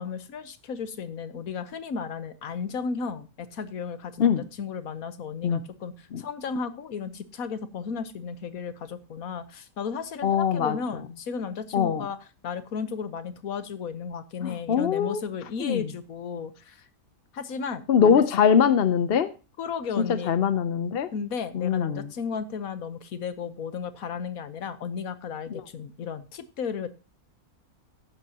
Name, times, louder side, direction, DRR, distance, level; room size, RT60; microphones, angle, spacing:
voice 1, 0.0-12.2 12.4-16.9 17.3-18.2 19.6-20.3 21.1-26.9, left 6 dB, 70° left, 12 dB, 1.5 m, -34 dB
voice 2, 10.2-10.8 11.7-12.0 14.4-15.2 15.6-15.8 17.9-19.3 20.3-21.1 21.5-22.1 25.5-25.6, left 7 dB, 55° left, 12 dB, 0.7 m, -22 dB
14.0 x 11.0 x 2.8 m, 0.31 s
omnidirectional pair, 1.6 m